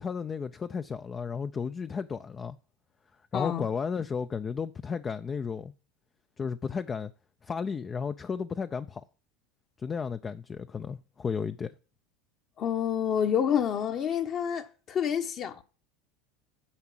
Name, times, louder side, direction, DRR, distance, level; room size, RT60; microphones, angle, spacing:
voice 1, 0.0-2.6 3.3-5.7 6.4-7.1 7.4-9.0 9.8-11.7, left 6 dB, 25° left, 0.5 m, -33 dB
voice 2, 3.3-3.7 12.6-15.6, left 8 dB, 40° left, 1.1 m, -28 dB
9.8 x 5.9 x 7.5 m
supercardioid pair, 110°, 0 cm